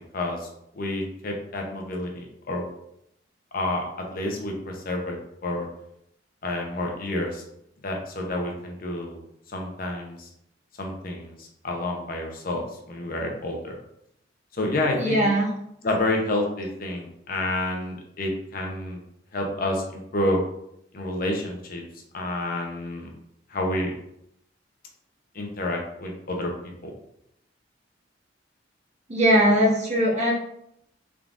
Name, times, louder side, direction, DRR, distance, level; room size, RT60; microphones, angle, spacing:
voice 1, 0.1-0.5 0.7-2.6 3.5-5.2 5.4-5.7 6.4-7.4 7.8-9.2 9.5-10.3 10.8-13.8 14.5-15.3 15.8-19.0 19.3-20.4 20.9-21.8 22.1-23.1 23.5-23.9 25.3-26.5 26.8-26.9, left 1 dB, 50° left, 1 dB, 0.7 m, -29 dB
voice 2, 15.0-15.5 29.1-30.3, equal, 35° right, -2 dB, 0.9 m, -20 dB
3.7 x 3.5 x 2.4 m, 0.76 s
head